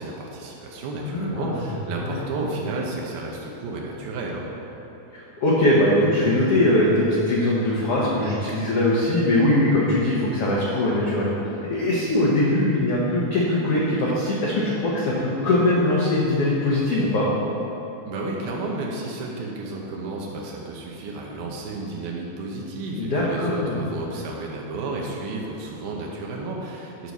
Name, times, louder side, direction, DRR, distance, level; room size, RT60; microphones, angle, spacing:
voice 1, 0.0-4.4 18.0-27.1, right 2 dB, 85° right, -2 dB, 2.7 m, -32 dB
voice 2, 1.0-1.5 2.0-2.2 5.1-11.3 11.6-17.3 23.0-23.8, left 1 dB, 80° left, -6 dB, 1.3 m, -21 dB
11.0 x 4.1 x 6.2 m, 3.0 s
omnidirectional pair, 4.3 m